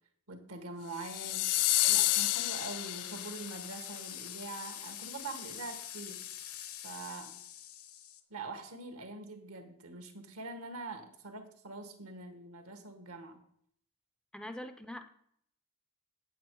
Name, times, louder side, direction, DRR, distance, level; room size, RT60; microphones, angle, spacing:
voice 1, 0.3-6.2 6.8-7.4 8.3-13.4, right 3 dB, 75° right, 6 dB, 1.5 m, -44 dB
sound 1, 1.0-3.5, left 19 dB, 90° left, 0.3 m, -29 dB
sound 2, 2.1-8.2, left 11 dB, 70° left, 0.9 m, -45 dB
voice 2, 14.3-15.1, left 1 dB, 5° left, 9 dB, 0.4 m, -43 dB
8.3 x 8.2 x 4.6 m, 0.69 s
head